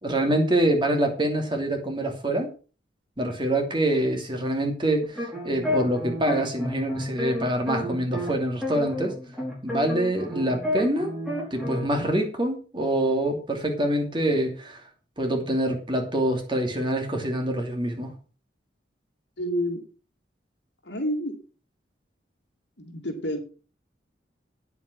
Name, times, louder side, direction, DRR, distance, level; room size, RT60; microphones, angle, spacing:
voice 1, 0.0-2.5 3.2-9.1 9.6-11.1 11.5-14.8 15.2-18.1, right 1 dB, 25° right, 3 dB, 2.7 m, -25 dB
sound 1, 5.0-8.3 8.6-11.9, left 1 dB, 5° right, 4.5 m, -30 dB
voice 2, 19.4-19.8 20.8-21.4 22.8-23.4, equal, 75° left, 4 dB, 2.6 m, -29 dB
9.3 x 8.4 x 6.1 m, 0.36 s
head